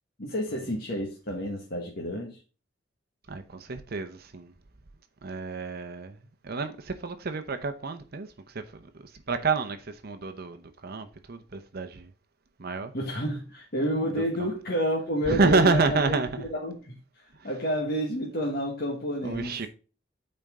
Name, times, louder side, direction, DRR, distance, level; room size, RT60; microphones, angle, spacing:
voice 1, 0.2-2.4 12.9-16.1 16.5-19.6, equal, 55° left, 1.5 m, -30 dB
voice 2, 3.3-4.5 5.2-6.2 6.4-12.1 12.6-12.9 14.2-14.3 15.3-16.4 17.4-17.5 19.2-19.7, right 4 dB, 55° right, 0.8 m, -29 dB
8.8 x 4.4 x 3.6 m
head